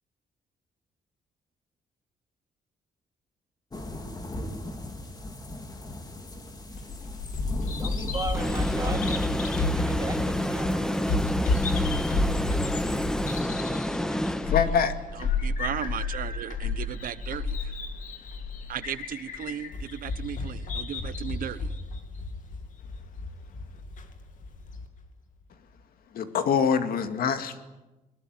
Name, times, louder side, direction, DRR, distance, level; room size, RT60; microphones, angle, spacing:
sound 1, 3.7-13.4, left 1 dB, 25° left, 3.1 m, -39 dB
Bird vocalization bird call bird song, 6.7-24.9, left 3 dB, 55° left, 2.9 m, -31 dB
voice 1, 7.8-11.2, right 3 dB, 20° right, 3 dB, 3.5 m, -37 dB
sound 2, 8.3-15.0, equal, 5° left, 1.0 m, -29 dB
voice 2, 14.5-14.9 26.1-27.6, left 7 dB, 75° left, 8 dB, 2.2 m, -25 dB
voice 3, 15.1-17.8 18.7-21.7, right 10 dB, 65° right, 15 dB, 0.9 m, -36 dB
22.0 x 21.0 x 9.7 m, 1.1 s
cardioid pair, 135°, 16 cm